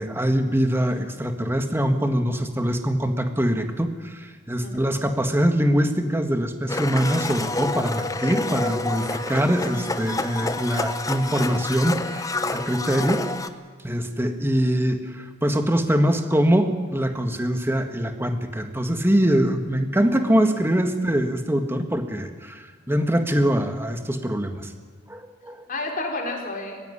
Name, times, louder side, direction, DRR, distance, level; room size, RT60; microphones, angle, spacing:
voice 1, 0.0-13.3 13.8-24.7 25.1-25.6, equal, 10° right, 6 dB, 1.7 m, -23 dB
Domestic sounds home sounds, 6.7-13.5, left 2 dB, 15° left, 0.9 m, -28 dB
voice 2, 20.0-20.5 20.9-21.0 25.7-26.8, left 2 dB, 45° left, 1 dB, 4.0 m, -32 dB
21.0 x 15.5 x 9.9 m, 1.5 s
head